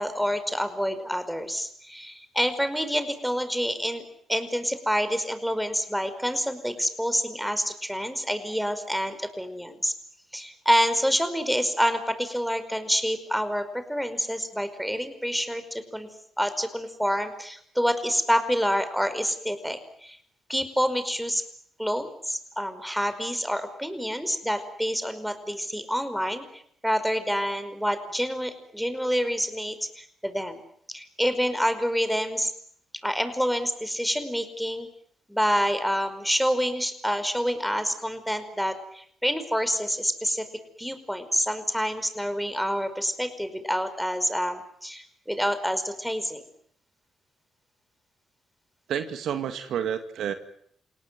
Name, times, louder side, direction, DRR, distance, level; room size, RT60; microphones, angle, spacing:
voice 1, 0.0-4.0 4.3-9.9 10.3-16.1 16.4-20.2 20.5-21.4 21.8-30.6 30.9-32.5 33.0-34.9 35.3-40.5 40.8-46.4, equal, ahead, 10 dB, 5.1 m, -27 dB
voice 2, 48.9-50.3, right 8 dB, 70° right, 9 dB, 2.0 m, -29 dB
28.5 x 18.5 x 9.4 m, 0.66 s
supercardioid pair, 55°, 0 cm